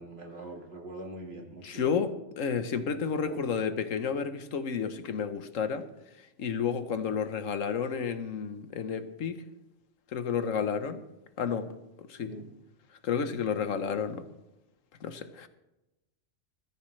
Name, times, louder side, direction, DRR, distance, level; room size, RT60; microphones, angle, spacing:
voice 1, 0.0-1.9 2.8-3.4 12.3-12.5, right 1 dB, 50° right, 2 dB, 2.3 m, -43 dB
voice 2, 1.6-5.9 6.4-9.4 10.1-11.0 11.4-11.7 12.1-12.3 13.0-14.2 15.0-15.5, left 6 dB, 85° left, 10 dB, 1.4 m, -31 dB
21.0 x 14.0 x 3.2 m, 0.97 s
omnidirectional pair, 1.3 m